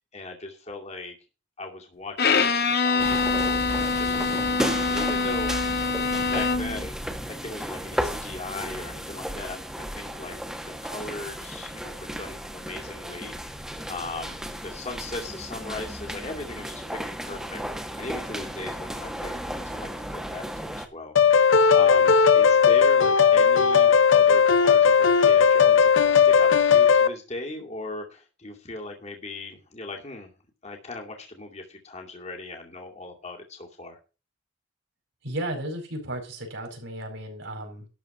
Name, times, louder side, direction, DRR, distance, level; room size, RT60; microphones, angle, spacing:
voice 1, 0.1-1.2 1.6-4.6 4.9-5.8 6.1-10.4 10.8-13.5 13.9-17.6 18.0-30.3 30.6-34.0, left 2 dB, 35° left, 1 dB, 2.4 m, -38 dB
Bowed string instrument, 2.2-6.9, left 4 dB, 55° left, 1.3 m, -24 dB
sound 1, 3.0-20.9, equal, 5° right, 1.4 m, -34 dB
sound 2, 21.2-27.1, left 6 dB, 80° left, 0.7 m, -17 dB
voice 2, 35.2-37.9, right 1 dB, 70° right, 3 dB, 5.0 m, -34 dB
12.5 x 4.7 x 8.1 m, 0.32 s
head